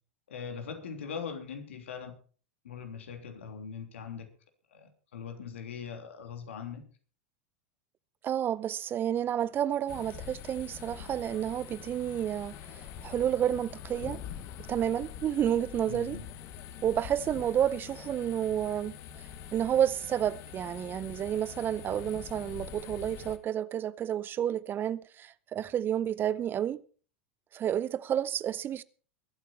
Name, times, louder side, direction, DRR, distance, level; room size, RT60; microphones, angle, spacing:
voice 1, 0.3-2.2 2.6-4.3 4.7-6.8 15.9-16.2, left 6 dB, 75° left, 3.2 m, -41 dB
voice 2, 8.2-14.2 14.7-16.2 16.8-18.9 19.5-26.8 27.5-28.8, right 10 dB, 30° right, 0.6 m, -30 dB
sound 1, 9.9-23.4, left 9 dB, 45° left, 1.5 m, -45 dB
22.5 x 8.4 x 4.5 m
hypercardioid pair, 90°, 7 cm